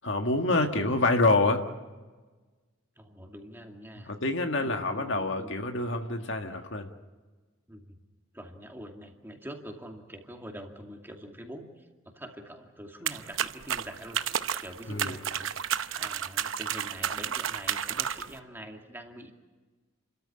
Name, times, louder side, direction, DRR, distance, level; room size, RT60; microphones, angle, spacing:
voice 1, 0.0-1.7 4.1-6.9 14.9-15.2, left 2 dB, 65° left, 5 dB, 1.8 m, -26 dB
voice 2, 3.0-4.1 4.6-5.7 7.7-8.0 8.3-11.9 12.1-19.3, equal, 10° right, 2 dB, 2.3 m, -45 dB
sound 1, 13.1-18.4, right 9 dB, 85° right, 0.8 m, -32 dB
29.5 x 13.5 x 9.9 m, 1.3 s
head